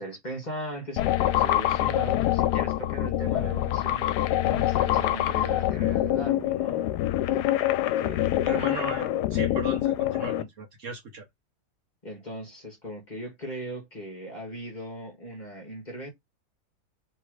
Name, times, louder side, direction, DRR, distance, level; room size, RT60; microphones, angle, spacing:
voice 1, 0.0-6.8 7.3-7.4 8.0-8.7 12.0-16.1, equal, 30° left, 1.5 m, -38 dB
sound 1, 1.0-10.4, left 13 dB, 85° left, 1.2 m, -25 dB
voice 2, 8.4-11.2, right 4 dB, 55° right, 1.2 m, -37 dB
3.4 x 3.2 x 4.7 m
omnidirectional pair, 1.7 m